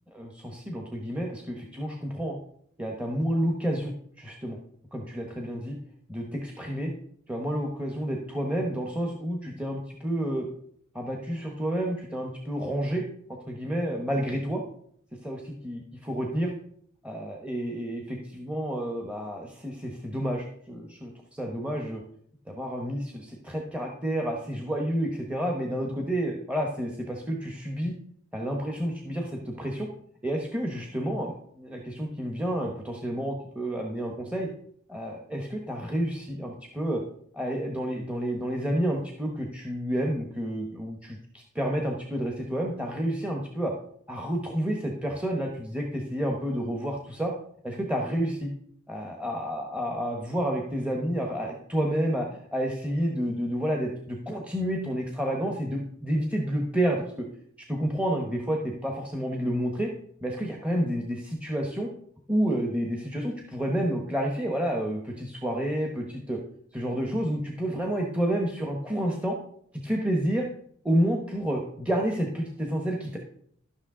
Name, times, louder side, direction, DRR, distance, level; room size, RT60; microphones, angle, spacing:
voice 1, 0.1-2.4 2.8-4.6 4.9-5.8 6.1-6.9 7.3-10.5 10.9-13.0 13.5-14.6 15.2-15.4 15.6-16.5 17.0-22.0 22.5-27.9 28.3-29.9 30.2-34.5 34.9-37.0 37.3-43.7 44.1-47.3 47.6-48.5 48.9-57.3 57.7-59.9 60.2-61.9 62.3-66.4 66.7-69.4 69.8-70.5 70.8-73.2, equal, 5° right, 1 dB, 1.0 m, -30 dB
12.5 x 6.2 x 3.7 m, 0.66 s
head